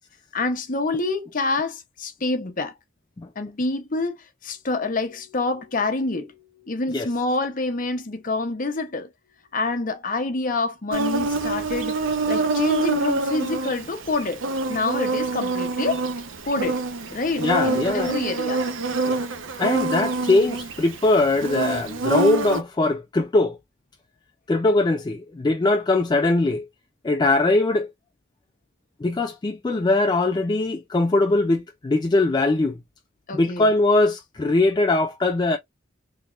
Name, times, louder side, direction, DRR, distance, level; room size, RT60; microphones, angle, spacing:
voice 1, 0.3-2.7 3.4-4.1 4.4-6.3 6.6-9.1 9.5-12.0 12.3-14.4 14.7-16.0 16.4-16.8 17.1-18.6 33.3-33.7, left 3 dB, 45° left, 0.8 m, -27 dB
Insect, 10.9-22.6, right 3 dB, 75° right, 0.8 m, -26 dB
voice 2, 17.4-18.1 19.1-19.3 19.6-23.6 24.5-26.7 27.0-27.9 29.0-32.8 33.3-35.6, left 2 dB, 20° left, 0.3 m, -21 dB
3.7 x 2.9 x 2.3 m
head